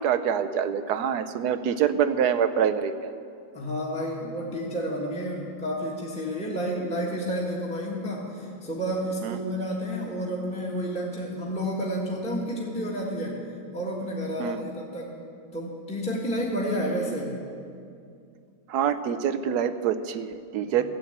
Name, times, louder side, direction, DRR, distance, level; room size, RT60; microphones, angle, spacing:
voice 1, 0.0-3.1 9.2-9.4 14.4-14.6 18.7-20.8, right 8 dB, 85° right, 11 dB, 1.2 m, -25 dB
voice 2, 3.5-13.4 13.7-15.1 15.5-17.3 20.7-20.8, equal, 5° left, -3 dB, 1.6 m, -30 dB
14.0 x 8.3 x 8.0 m, 2.4 s
omnidirectional pair, 1.6 m